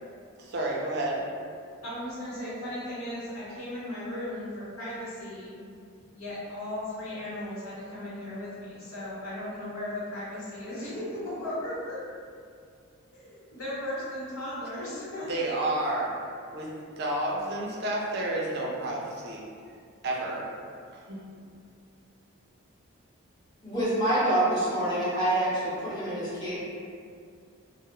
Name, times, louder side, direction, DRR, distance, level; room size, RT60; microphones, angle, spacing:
voice 1, 0.4-1.3 15.3-16.1 16.5-19.4 20.0-20.5 21.1-21.2, right 1 dB, 50° right, -3 dB, 0.4 m, -30 dB
voice 2, 1.8-5.5 6.1-12.0 13.1-15.3, left 1 dB, 80° left, -9 dB, 0.9 m, -36 dB
voice 3, 23.6-26.6, right 1 dB, 20° left, -12 dB, 0.8 m, -26 dB
2.3 x 2.0 x 2.9 m, 2.3 s
head